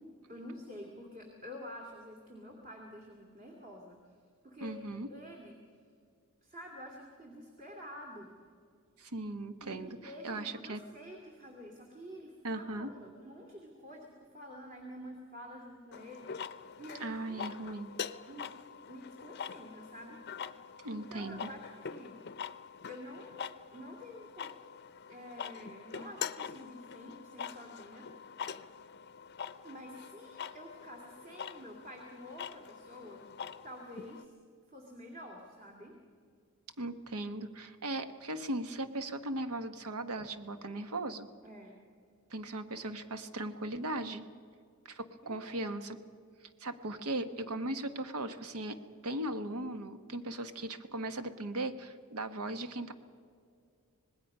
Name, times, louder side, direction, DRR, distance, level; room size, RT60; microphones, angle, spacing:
voice 1, 0.3-4.0 4.4-4.8 5.1-5.6 6.4-8.3 9.6-17.4 18.3-18.5 18.9-20.2 20.9-22.2 22.9-23.4 23.7-24.5 25.1-28.3 29.6-33.2 33.6-34.3 34.7-36.0 41.4-41.8 45.2-45.6, equal, 40° right, 0 dB, 2.4 m, -49 dB
voice 2, 4.6-5.1 9.0-10.8 12.4-12.9 17.0-17.9 20.8-21.5 36.8-41.3 42.3-44.2 44.8-46.0 46.6-48.8 49.0-52.9, right 1 dB, 80° right, 9 dB, 1.2 m, -38 dB
sound 1, 15.9-34.2, left 7 dB, 50° left, 0.6 m, -44 dB
25.5 x 19.5 x 5.5 m, 2.3 s
head